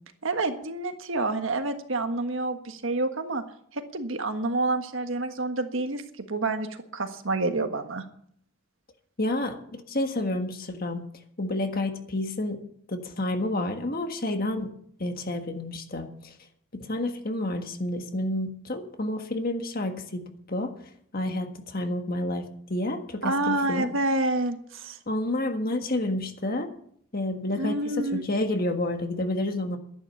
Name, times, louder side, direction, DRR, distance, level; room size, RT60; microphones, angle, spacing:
voice 1, 0.2-3.4 3.7-8.0 23.2-25.0 27.6-28.2, right 2 dB, 65° right, 7 dB, 1.5 m, -28 dB
voice 2, 9.2-11.0 11.4-12.6 12.9-14.7 15.0-16.3 16.7-20.7 21.1-23.9 25.1-26.7 27.1-29.8, left 1 dB, 45° left, 6 dB, 1.6 m, -29 dB
12.5 x 11.0 x 7.1 m, 0.65 s
head